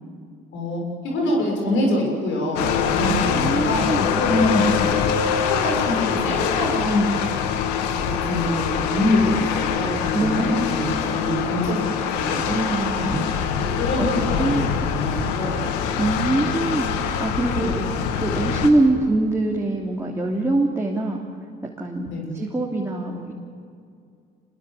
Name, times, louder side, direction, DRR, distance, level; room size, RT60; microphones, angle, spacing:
voice 1, 0.5-3.9 4.2-5.1 5.5-7.0 7.9-11.9 12.2-12.4 13.0-13.2 13.7-15.6 16.3-16.5 17.6-17.8 18.3-18.5 22.1-22.3, left 1 dB, 70° left, 0 dB, 6.8 m, -25 dB
sound 1, 2.6-18.7, left 7 dB, 90° left, 1.7 m, -24 dB
voice 2, 2.9-4.0 10.1-10.6 12.5-13.2 14.0-14.1 14.4-14.7 16.0-16.9 17.2-21.2 21.8-23.3, right 2 dB, 10° right, -2 dB, 3.1 m, -24 dB
25.5 x 21.0 x 8.5 m, 2.4 s
supercardioid pair, 65°, 21 cm